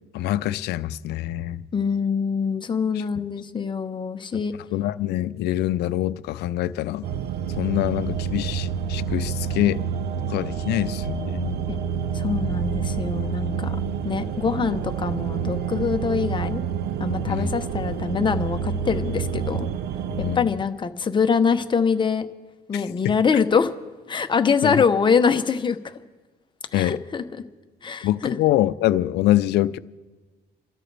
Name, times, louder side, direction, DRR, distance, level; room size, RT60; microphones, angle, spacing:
voice 1, 0.1-1.7 4.3-4.4 4.7-7.1 7.6-9.8 10.3-11.6 17.3-17.5 20.2-20.5 23.0-23.2 24.6-24.8 26.7-27.0 28.0-29.8, left 14 dB, 75° left, 0.6 m, -24 dB
voice 2, 1.7-4.5 11.7-11.8 12.1-13.8 14.0-16.6 17.0-19.7 20.2-22.3 22.7-23.7 24.1-25.9 26.7-27.2 27.8-28.4, left 6 dB, 30° left, 0.9 m, -24 dB
sound 1, 7.0-20.4, right 7 dB, 70° right, 0.7 m, -28 dB
30.0 x 13.0 x 3.4 m
cardioid pair, 110°, 17 cm